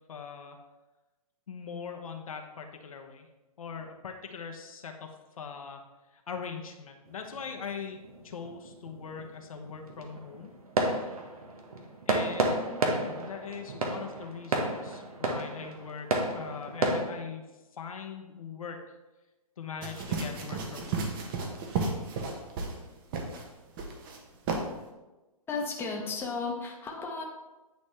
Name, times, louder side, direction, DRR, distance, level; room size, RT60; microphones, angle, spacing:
voice 1, 0.1-0.6 1.5-3.3 3.6-5.8 6.1-8.0 8.2-10.5 12.1-17.4 17.7-19.0 19.6-21.2, left 6 dB, 70° left, 4 dB, 0.9 m, -41 dB
sound 1, 7.1-17.1, right 2 dB, 75° right, 1.2 m, -32 dB
sound 2, 19.8-22.8 23.1-23.4 23.8-24.2 24.5-24.6, right 4 dB, 35° right, 1.1 m, -33 dB
voice 2, 25.5-27.2, left 4 dB, 10° left, -1 dB, 0.9 m, -34 dB
9.2 x 4.1 x 3.3 m, 1.1 s
figure-of-eight pair, 125°, 19 cm